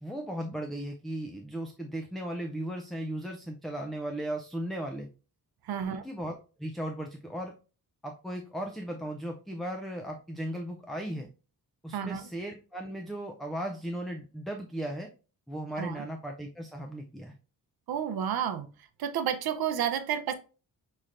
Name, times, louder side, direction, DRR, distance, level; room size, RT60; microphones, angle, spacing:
voice 1, 0.0-5.1 5.8-7.5 8.0-11.3 11.8-15.1 15.5-17.3, right 1 dB, ahead, 0.3 m, -36 dB
voice 2, 5.6-6.0 11.9-12.3 15.8-16.1 17.9-18.7 19.0-20.3, right 9 dB, 80° right, 0.6 m, -31 dB
5.6 x 3.2 x 2.4 m
wide cardioid pair, 130°, 36 cm